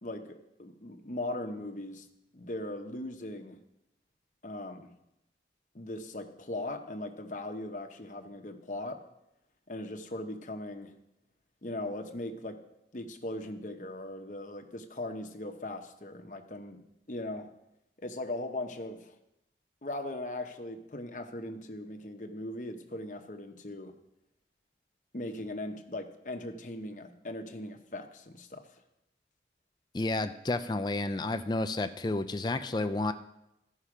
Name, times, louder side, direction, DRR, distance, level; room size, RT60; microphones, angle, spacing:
voice 1, 0.0-2.1 2.3-3.6 4.4-4.9 5.7-9.0 9.7-10.9 11.6-12.6 12.9-16.8 17.1-17.5 18.0-19.1 19.8-23.9 25.1-28.7, left 1 dB, 45° left, 5 dB, 0.9 m, -39 dB
voice 2, 29.9-33.1, left 2 dB, 25° left, 9 dB, 0.4 m, -31 dB
15.0 x 5.6 x 4.9 m, 0.86 s
head